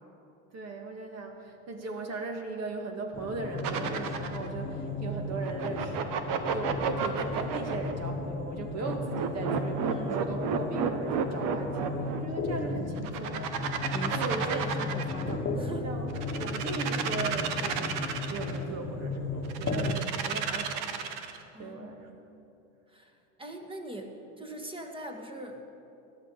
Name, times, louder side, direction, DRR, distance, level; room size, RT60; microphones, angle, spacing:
voice 1, 0.5-13.5 14.1-14.6 15.8-20.9 21.6-22.0, right 3 dB, 40° right, 3 dB, 2.1 m, -38 dB
sound 1, 3.1-19.9, left 2 dB, 30° left, 1.3 m, -35 dB
sound 2, 3.6-4.5 5.4-7.9 8.8-12.2 13.0-15.3 16.1-18.6 19.5-21.4, right 7 dB, 55° right, 1.3 m, -32 dB
voice 2, 9.9-10.3 13.9-16.0 21.5-22.2 22.9-25.6, right 1 dB, 15° right, 4 dB, 1.8 m, -41 dB
17.5 x 12.0 x 5.1 m, 2.8 s
supercardioid pair, 95°, 38 cm